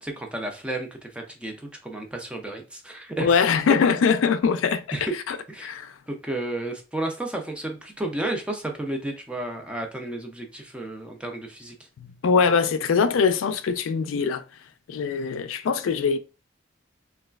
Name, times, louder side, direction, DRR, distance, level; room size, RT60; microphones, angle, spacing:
voice 1, 0.0-3.4 4.9-5.7 6.1-11.7, right 1 dB, 5° right, 0.4 m, -32 dB
voice 2, 3.2-5.4 5.6-5.9 12.2-14.4 14.9-16.2, left 6 dB, 85° left, 0.4 m, -22 dB
3.1 x 2.3 x 2.3 m
head